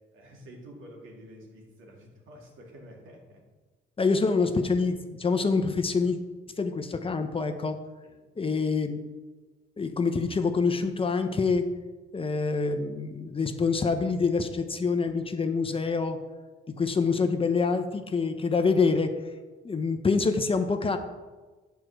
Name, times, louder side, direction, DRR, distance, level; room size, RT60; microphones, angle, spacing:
voice 1, 0.0-3.4 8.0-8.2, equal, 85° right, -1 dB, 2.3 m, -49 dB
voice 2, 4.0-6.2 6.6-7.8 8.4-9.1 9.8-11.7 12.1-16.2 16.7-19.1 19.6-21.0, left 4 dB, 25° left, 7 dB, 0.8 m, -26 dB
8.3 x 4.6 x 6.5 m, 1.3 s
cardioid pair, 90°, 20 cm